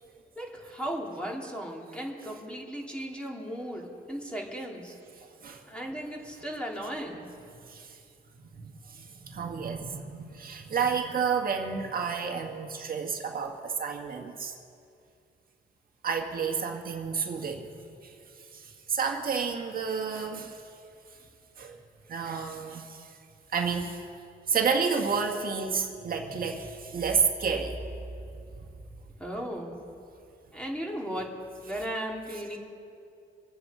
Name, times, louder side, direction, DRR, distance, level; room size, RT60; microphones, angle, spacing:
voice 1, 0.4-4.9 5.7-7.3 29.2-29.8 30.5-31.3 31.6-32.6, equal, 5° left, -1 dB, 2.9 m, -36 dB
voice 2, 8.6-14.5 16.0-17.6 18.0-18.1 18.5-20.6 21.6-21.8 22.1-23.1 23.5-24.1 24.5-27.9, right 5 dB, 45° right, 3 dB, 1.8 m, -30 dB
25.0 x 8.9 x 5.0 m, 2.5 s
cardioid pair, 90°, 20 cm